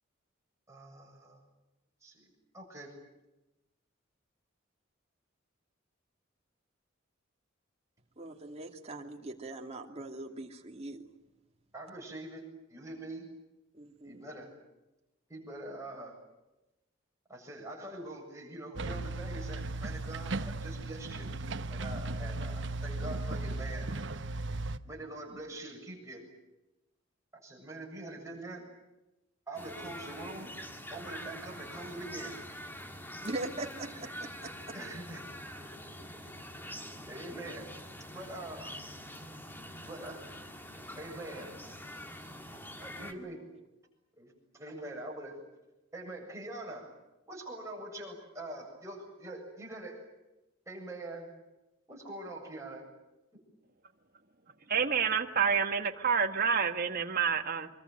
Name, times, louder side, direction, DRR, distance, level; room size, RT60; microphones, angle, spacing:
voice 1, 0.7-1.4 2.0-3.0 11.7-13.3 14.0-14.5 15.3-16.2 17.3-21.3 21.7-24.3 24.8-26.2 27.3-28.7 29.5-30.5 30.9-32.4 34.7-35.3 35.6-35.7 37.1-37.7 38.1-38.8 39.9-40.2 41.0-41.5 42.8-43.4 44.2-45.4 45.9-46.9 47.3-50.1 50.7-51.3 51.9-52.9, right 1 dB, 15° right, -1 dB, 7.6 m, -44 dB
voice 2, 8.2-11.0 13.7-14.3 33.2-34.6, right 2 dB, 30° right, 2 dB, 2.6 m, -41 dB
sound 1, 18.8-24.8, right 2 dB, 65° right, 1.0 m, -36 dB
sound 2, 29.5-43.1, equal, 10° left, 2.2 m, -45 dB
voice 3, 54.7-57.7, right 6 dB, 45° right, 6 dB, 1.8 m, -28 dB
25.5 x 23.5 x 9.4 m, 0.99 s
head